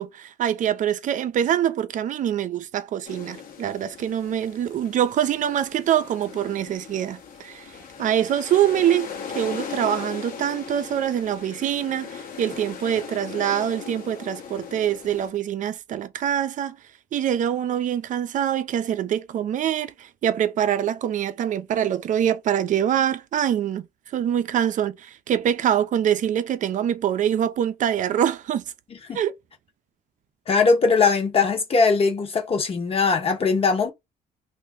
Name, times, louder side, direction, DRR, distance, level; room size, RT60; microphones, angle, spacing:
voice 1, 0.0-9.1 9.3-16.8 17.1-23.9 24.1-28.6 29.1-29.3, right 10 dB, 50° right, 0.5 m, -24 dB
sound 1, 3.0-15.3, left 6 dB, 60° left, 1.1 m, -38 dB
voice 2, 30.5-33.9, left 4 dB, 35° left, 1.0 m, -20 dB
2.9 x 2.6 x 3.5 m
cardioid pair, 110°, 17 cm